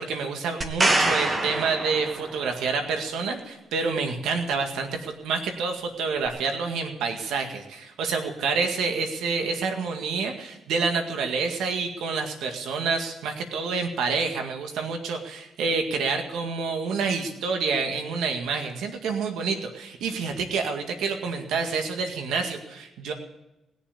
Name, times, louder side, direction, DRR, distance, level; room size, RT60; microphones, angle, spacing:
voice 1, 0.0-23.1, right 4 dB, 85° right, 4 dB, 2.0 m, -28 dB
sound 1, 0.6-2.6 6.3-6.4, right 2 dB, 25° right, 1.8 m, -25 dB
20.0 x 7.2 x 8.4 m, 0.94 s
cardioid pair, 90°, 0 cm